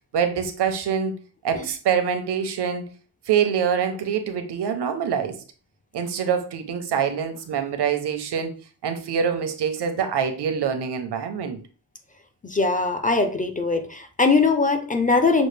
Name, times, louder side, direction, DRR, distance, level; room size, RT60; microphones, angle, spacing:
voice 1, 0.1-1.2 1.4-2.9 3.3-5.4 5.9-8.5 8.8-11.6, right 7 dB, 80° right, 0.9 m, -25 dB
voice 2, 12.4-15.5, left 3 dB, 20° left, 0.5 m, -21 dB
6.3 x 2.5 x 3.3 m
wide cardioid pair, 130°, 40 cm